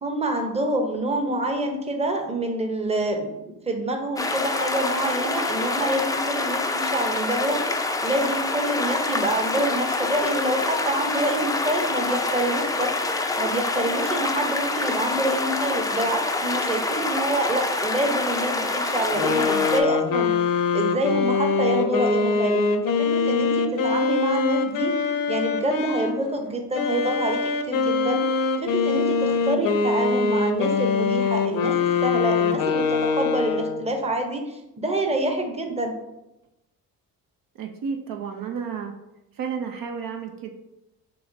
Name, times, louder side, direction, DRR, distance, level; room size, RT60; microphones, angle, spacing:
voice 1, 0.0-12.9 13.4-20.3 20.7-22.6 22.9-24.9 25.3-31.7 32.0-35.9, right 1 dB, 15° right, 4 dB, 0.9 m, -27 dB
sound 1, 4.2-19.8, left 2 dB, 10° left, 0.4 m, -26 dB
sound 2, 19.1-26.2 26.7-33.9, left 5 dB, 60° left, 0.6 m, -23 dB
voice 2, 37.5-38.9 39.3-40.5, right 6 dB, 60° right, 4 dB, 0.6 m, -31 dB
5.5 x 3.0 x 2.7 m, 0.93 s
supercardioid pair, 65°, 38 cm